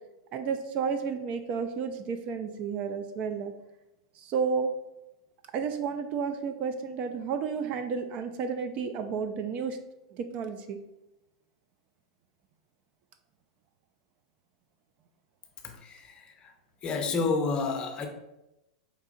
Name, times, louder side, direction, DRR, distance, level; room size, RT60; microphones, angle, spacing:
voice 1, 0.3-3.5 4.2-4.7 5.5-9.8 10.1-10.8, right 6 dB, 40° right, 8 dB, 0.3 m, -31 dB
voice 2, 15.6-16.5 16.8-18.1, left 4 dB, 30° left, 4 dB, 0.6 m, -30 dB
4.7 x 2.7 x 2.5 m, 0.93 s
hypercardioid pair, 110°, 3 cm